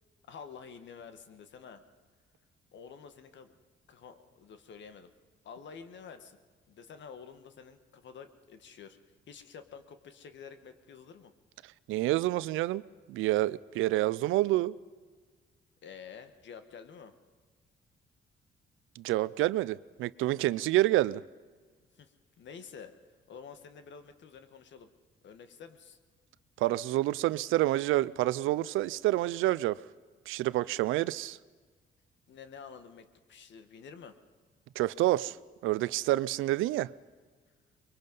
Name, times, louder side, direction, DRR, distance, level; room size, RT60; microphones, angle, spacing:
voice 1, 0.3-1.8 2.7-3.6 3.9-5.1 5.4-6.4 6.7-9.0 9.3-11.3 15.8-17.1 21.9-22.9 23.3-24.9 25.2-26.0 32.3-34.2, left 6 dB, 65° left, 1.7 m, -49 dB
voice 2, 11.9-12.8 13.1-14.7 19.0-21.2 26.6-29.8 30.3-31.4 34.8-35.4 35.6-36.9, right 16 dB, 90° right, 0.5 m, -28 dB
24.0 x 22.5 x 5.5 m
cardioid pair, 90°, 20 cm